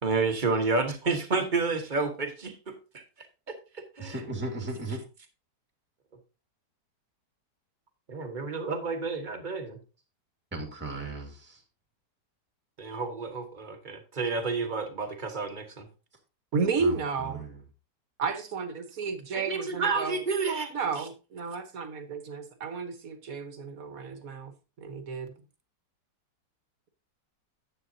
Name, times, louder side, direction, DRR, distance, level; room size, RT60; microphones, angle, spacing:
voice 1, 0.0-3.0 3.5-4.2 8.1-9.8 12.8-15.9 19.3-20.7 21.0-21.1, right 4 dB, 30° right, 5 dB, 1.3 m, -30 dB
voice 2, 4.0-5.0 10.5-11.6 16.8-17.6, right 2 dB, 5° right, 3 dB, 1.7 m, -36 dB
voice 3, 16.5-17.4 18.2-20.2 20.7-24.5 24.8-25.3, right 5 dB, 55° right, 9 dB, 1.5 m, -32 dB
10.5 x 8.3 x 2.8 m, 0.31 s
omnidirectional pair, 1.9 m